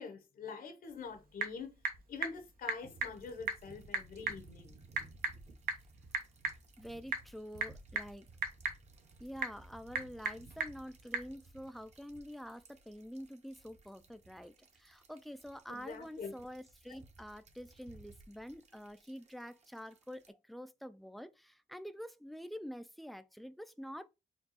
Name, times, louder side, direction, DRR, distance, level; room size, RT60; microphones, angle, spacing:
voice 1, 0.0-1.7 2.1-4.7 15.7-16.3 16.9-17.0, left 5 dB, 75° left, 1.0 m, -45 dB
Typing / Telephone, 0.8-11.3, right 4 dB, 80° right, 0.9 m, -41 dB
sound 1, 2.8-20.3, right 2 dB, 50° right, 1.0 m, -59 dB
voice 2, 6.8-8.3 9.2-24.1, equal, ahead, 0.3 m, -47 dB
4.4 x 2.3 x 4.1 m
cardioid pair, 110°, 15 cm